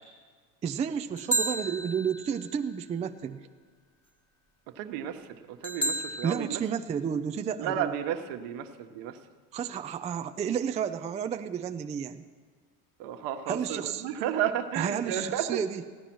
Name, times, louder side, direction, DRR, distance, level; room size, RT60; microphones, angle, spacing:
voice 1, 0.6-3.4 6.2-7.9 9.5-12.2 13.5-14.1 14.7-15.8, right 7 dB, 15° right, 7 dB, 0.3 m, -31 dB
sound 1, 1.2-2.5 5.6-6.4, right 1 dB, 5° left, 1.2 m, -31 dB
voice 2, 4.8-5.2 5.6-6.6 7.6-9.1 13.0-15.4, right 9 dB, 65° right, 6 dB, 1.3 m, -32 dB
15.5 x 9.9 x 6.1 m, 1.5 s
supercardioid pair, 110°, 47 cm